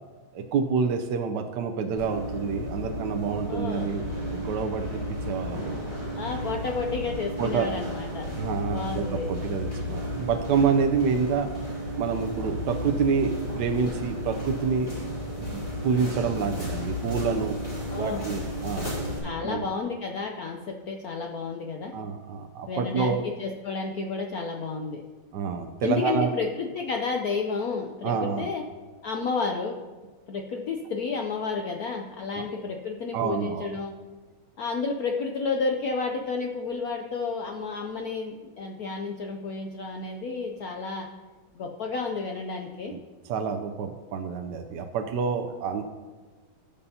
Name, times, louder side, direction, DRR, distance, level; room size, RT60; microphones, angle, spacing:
voice 1, 0.3-4.0 4.3-4.9 5.3-5.7 7.4-7.7 8.4-11.5 12.0-14.9 15.2-17.6 18.0-18.9 19.4-19.7 21.9-23.2 25.3-26.3 28.0-28.5 32.4-32.5 33.1-33.7 42.9-43.0 43.3-45.8, right 6 dB, 70° right, 5 dB, 1.1 m, -28 dB
sound 1, 2.0-19.2, equal, 30° left, 3.4 m, -33 dB
voice 2, 3.5-3.9 6.1-8.3 8.6-9.3 17.9-18.3 19.2-21.9 22.7-25.0 25.8-28.6 29.0-29.8 30.3-33.9 34.6-41.1 41.5-42.9, left 4 dB, 75° left, 2 dB, 0.8 m, -31 dB
18.0 x 6.8 x 2.8 m, 1.3 s
omnidirectional pair, 2.4 m